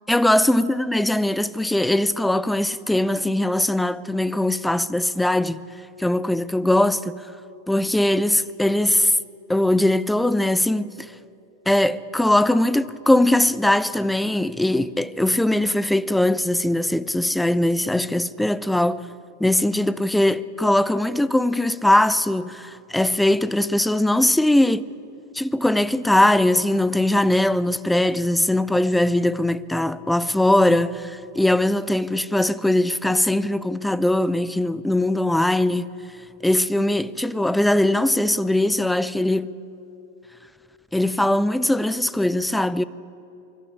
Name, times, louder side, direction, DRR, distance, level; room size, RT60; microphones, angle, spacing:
voice 1, 0.1-5.6 6.0-7.2 7.7-9.2 9.5-11.1 11.7-19.1 19.4-24.9 25.3-35.9 36.4-39.5 40.9-42.8, left 1 dB, 5° left, 0.5 m, -20 dB
24.0 x 12.0 x 9.9 m
figure-of-eight pair, 90°, 0 cm